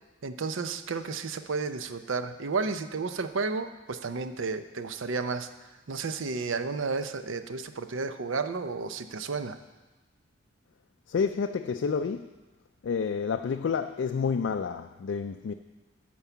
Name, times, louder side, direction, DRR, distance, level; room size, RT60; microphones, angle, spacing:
voice 1, 0.2-5.5 5.9-9.6, right 4 dB, 80° right, 0.6 m, -32 dB
voice 2, 11.1-12.3 12.8-15.5, left 6 dB, 65° left, 0.4 m, -29 dB
13.0 x 4.7 x 6.9 m
head